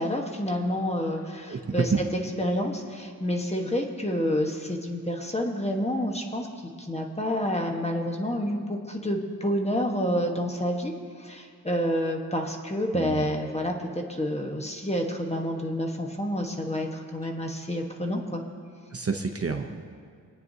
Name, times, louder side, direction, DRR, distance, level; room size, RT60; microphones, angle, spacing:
voice 1, 0.0-1.9 2.4-6.5 6.8-10.9 11.2-13.7 14.1-18.4, equal, 15° left, 1 dB, 1.2 m, -28 dB
voice 2, 1.5-2.0 12.9-13.3 18.9-19.9, right 5 dB, 40° right, 4 dB, 0.8 m, -29 dB
26.0 x 9.0 x 2.8 m, 2.2 s
wide cardioid pair, 95°, 38 cm